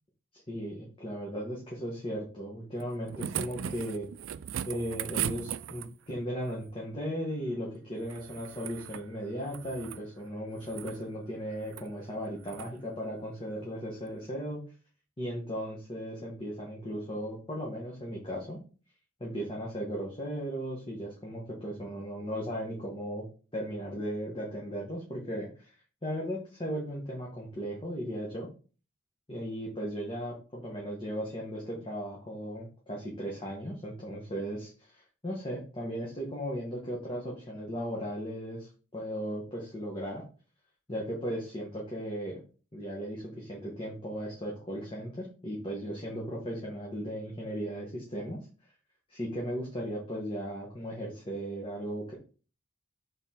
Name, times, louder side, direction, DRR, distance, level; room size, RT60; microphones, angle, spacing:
voice 1, 0.5-4.1 4.7-14.6 15.2-18.6 19.2-23.3 23.5-25.7 26.0-28.5 29.3-40.2 40.9-42.4 42.7-48.4 49.1-52.1, equal, 25° left, -3 dB, 1.3 m, -36 dB
sound 1, 2.8-6.1 8.0-9.1 9.4-10.0 10.6-11.0 11.6-11.9 12.4-12.7 14.1-14.2, right 10 dB, 80° right, 0.4 m, -38 dB
5.7 x 4.0 x 4.4 m, 0.37 s
head